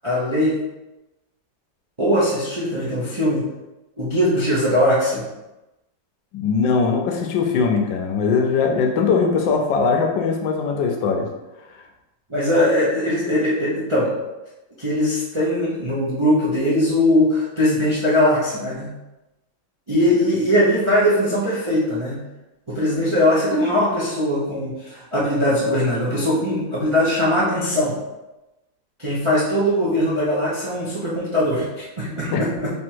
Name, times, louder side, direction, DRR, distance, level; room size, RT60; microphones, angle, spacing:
voice 1, 0.0-0.6 2.0-3.4 4.0-5.2 12.3-14.1 14.8-18.9 19.9-22.2 22.7-27.9 29.0-32.7, left 1 dB, 45° right, -8 dB, 0.3 m, -20 dB
voice 2, 6.3-11.3 11.7-11.8 32.3-32.4, left 5 dB, 75° left, 2 dB, 1.2 m, -20 dB
3.4 x 3.0 x 4.4 m, 1.0 s
omnidirectional pair, 2.1 m